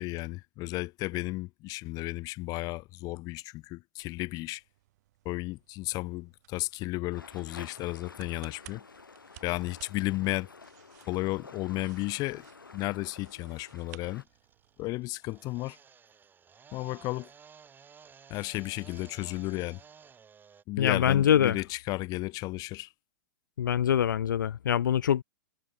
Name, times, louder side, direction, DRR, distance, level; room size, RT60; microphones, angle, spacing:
voice 1, 0.0-4.6 5.2-8.8 9.4-10.5 11.1-12.4 12.7-14.2 14.8-15.8 16.7-17.3 18.3-19.8 20.7-22.9, left 20 dB, 35° left, 1.0 m, -33 dB
sound 1, 4.1-14.9, right 16 dB, 55° right, 5.6 m, -58 dB
sound 2, 7.1-14.2, left 4 dB, 90° left, 3.8 m, -51 dB
sound 3, 9.8-20.6, right 6 dB, 20° right, 6.0 m, -57 dB
voice 2, 20.8-21.6 23.6-25.2, left 9 dB, 70° left, 1.0 m, -24 dB
hypercardioid pair, 110°, 11 cm